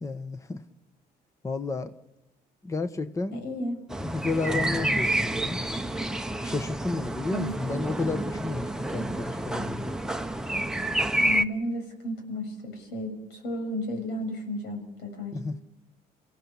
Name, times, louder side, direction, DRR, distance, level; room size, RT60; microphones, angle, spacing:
voice 1, 0.0-0.6 1.4-1.9 2.6-3.4 4.1-5.6 6.4-9.9 15.3-15.6, left 3 dB, 20° left, 9 dB, 1.1 m, -31 dB
voice 2, 3.3-3.8 7.3-7.6 11.2-15.4, left 1 dB, 85° left, 4 dB, 6.7 m, -33 dB
sound 1, 3.9-11.4, right 1 dB, 5° right, 0.9 m, -29 dB
28.0 x 16.5 x 7.2 m, 0.93 s
cardioid pair, 110°, 17 cm